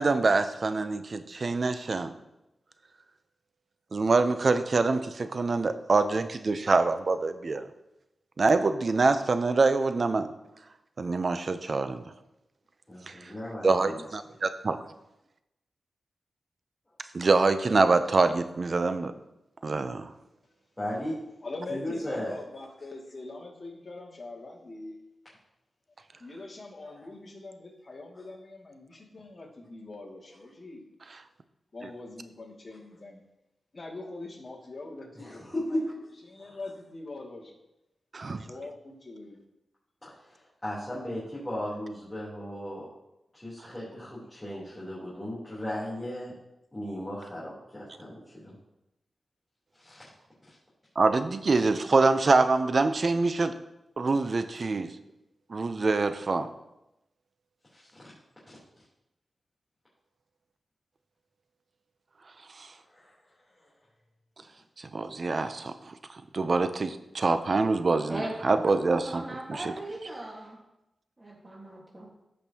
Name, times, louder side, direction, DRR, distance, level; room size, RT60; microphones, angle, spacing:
voice 1, 0.0-2.1 3.9-7.6 8.4-10.3 11.0-12.0 13.6-14.8 17.1-19.1 19.6-20.1 38.1-38.4 51.0-53.5 54.0-54.9 55.5-56.5 62.6-62.7 64.9-69.2, right 3 dB, 50° right, 10 dB, 0.6 m, -25 dB
voice 2, 12.9-14.0 20.8-21.2 21.7-22.3 26.8-27.1 35.1-35.9 36.4-36.6 40.0-42.9 43.3-46.3 46.7-48.5 49.7-50.0 50.5-50.6 57.7-57.9 62.9-63.1, left 1 dB, 15° left, -9 dB, 3.4 m, -36 dB
voice 3, 21.4-25.0 26.2-30.8 31.7-33.2 33.7-35.4 35.7-35.8 36.2-37.6 38.2-39.4, left 2 dB, 40° left, -2 dB, 2.3 m, -43 dB
voice 4, 68.1-70.6 71.2-72.1, right 1 dB, 25° right, -3 dB, 1.6 m, -39 dB
14.5 x 5.3 x 2.9 m, 0.91 s
cardioid pair, 70°, 0 cm